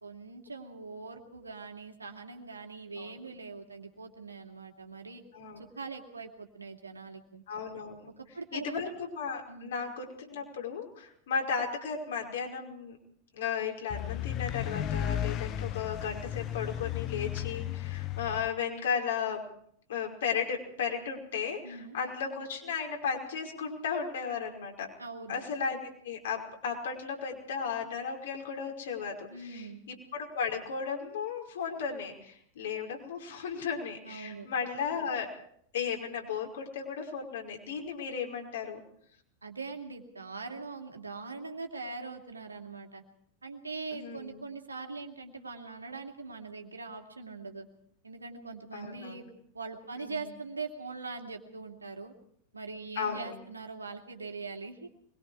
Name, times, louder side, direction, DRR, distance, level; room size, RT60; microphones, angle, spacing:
voice 1, 0.0-5.2 5.6-7.4 8.2-8.8 9.5-9.7 21.6-22.0 25.0-25.4 29.3-29.8 34.0-34.5 39.4-43.0 43.4-47.7 48.0-49.2 49.5-52.1 52.5-54.9, right 4 dB, 80° right, 3 dB, 2.7 m, -42 dB
voice 2, 7.5-8.1 8.5-13.0 13.3-19.5 19.9-24.9 25.3-35.3 35.7-38.8 43.9-44.4 48.7-49.2 50.0-50.2 53.0-53.3, left 6 dB, 60° left, 1 dB, 5.2 m, -35 dB
sound 1, 13.9-18.5, left 11 dB, 35° left, 0.8 m, -34 dB
25.0 x 22.0 x 4.8 m, 0.66 s
figure-of-eight pair, 90°, 0 cm